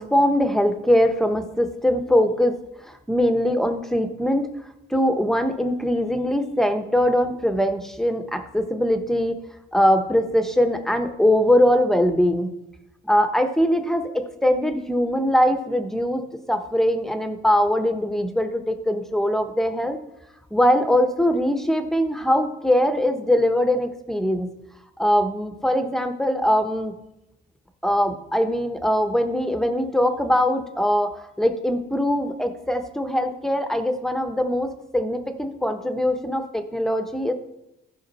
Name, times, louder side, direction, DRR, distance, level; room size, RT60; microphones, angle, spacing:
voice 1, 0.0-4.5 4.9-9.4 9.7-12.5 13.0-16.2 16.5-20.0 20.5-24.5 25.0-26.9 27.8-37.3, equal, ahead, 7 dB, 1.1 m, -22 dB
14.5 x 5.0 x 4.2 m, 0.90 s
cardioid pair, 90°, 20 cm